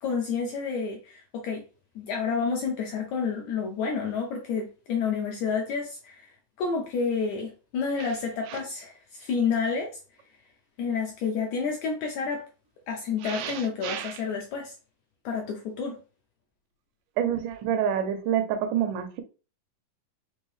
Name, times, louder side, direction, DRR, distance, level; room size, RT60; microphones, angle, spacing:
voice 1, 0.0-1.6 2.0-6.3 6.6-9.9 10.8-12.5 12.9-14.7 15.3-16.0, left 5 dB, 75° left, 1.8 m, -29 dB
voice 2, 13.2-14.1 17.2-19.2, right 9 dB, 80° right, 2.1 m, -28 dB
5.4 x 2.8 x 3.2 m
omnidirectional pair, 4.0 m